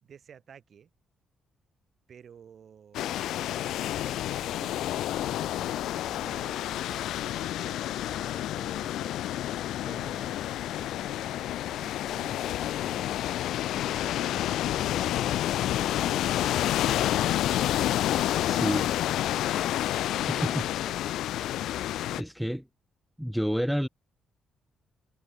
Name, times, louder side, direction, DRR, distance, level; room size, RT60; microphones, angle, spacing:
voice 1, 0.0-0.9 2.1-3.2 3.8-9.2 9.8-13.3 13.7-17.4 18.1-19.0 19.8-21.2, right 7 dB, 55° right, 4.0 m, -51 dB
sound 1, 2.9-22.2, left 13 dB, 80° left, 0.7 m, -29 dB
voice 2, 18.4-18.9 20.3-20.7 22.1-22.6 23.2-23.9, equal, ahead, 1.1 m, -29 dB
cardioid pair, 90°, 0 cm